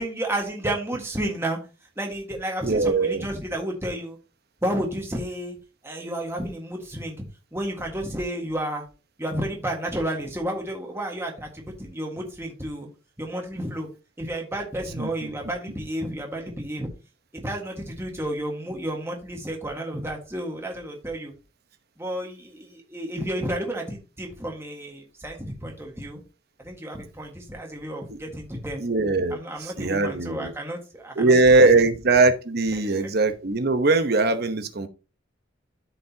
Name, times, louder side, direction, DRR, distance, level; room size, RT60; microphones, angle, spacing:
voice 1, 0.0-1.6 2.0-4.2 4.6-5.6 5.8-7.2 7.5-8.8 9.2-12.9 13.2-13.9 14.2-16.9 17.4-21.3 22.0-26.2 26.6-28.8 29.3-31.4 31.7-31.8 32.7-33.1, right 1 dB, 15° right, 1.6 m, -31 dB
voice 2, 2.6-3.3 15.0-15.3 28.8-30.5 31.2-34.9, right 3 dB, 55° right, 1.0 m, -21 dB
13.0 x 5.2 x 2.8 m
head